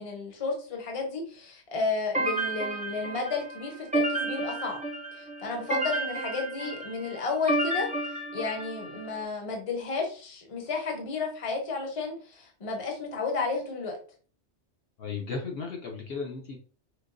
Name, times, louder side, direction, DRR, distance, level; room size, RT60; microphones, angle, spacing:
voice 1, 0.0-4.8 5.2-14.0, left 4 dB, 35° left, 1 dB, 0.7 m, -32 dB
sound 1, 2.1-9.1, right 2 dB, 10° right, 0.4 m, -31 dB
voice 2, 15.0-16.6, left 4 dB, 60° left, 0 dB, 0.9 m, -35 dB
4.6 x 2.1 x 2.5 m, 0.39 s
omnidirectional pair, 1.2 m